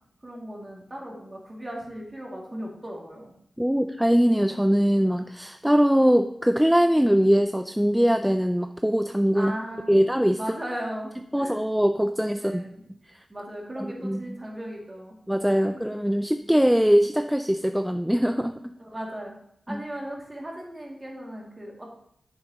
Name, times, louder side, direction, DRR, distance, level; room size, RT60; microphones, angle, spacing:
voice 1, 0.2-3.3 9.3-10.0 10.4-11.6 12.4-12.8 13.3-15.1 15.5-15.8 18.8-19.3 19.7-22.0, right 1 dB, 30° right, -2 dB, 2.5 m, -37 dB
voice 2, 3.6-9.5 9.9-10.4 11.3-12.6 13.1-13.2 14.0-14.2 15.3-18.6 19.7-19.8, equal, 5° right, 8 dB, 0.4 m, -22 dB
9.0 x 7.0 x 3.0 m, 0.71 s
cardioid pair, 60°, 0 cm